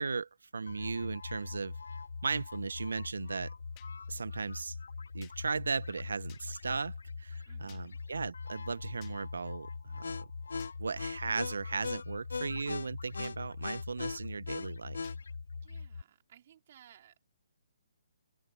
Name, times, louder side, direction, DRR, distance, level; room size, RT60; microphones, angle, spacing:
voice 1, 0.0-1.8 2.2-3.5 4.1-4.8 5.1-10.3 10.8-15.0, right 4 dB, 85° right, 0.8 m, -36 dB
sound 1, 0.7-16.0, left 4 dB, 85° left, 1.8 m, -41 dB
sound 2, 3.8-3.9 5.2-5.4 6.3-6.4 7.7-7.8 9.0-9.2 10.6-10.7 11.8-12.0 13.2-13.4 15.0-15.2, left 25 dB, 25° left, 1.7 m, -57 dB
voice 2, 7.5-8.0 15.6-17.4, right 10 dB, 45° right, 4.2 m, -60 dB
open air
hypercardioid pair, 150°, 0 cm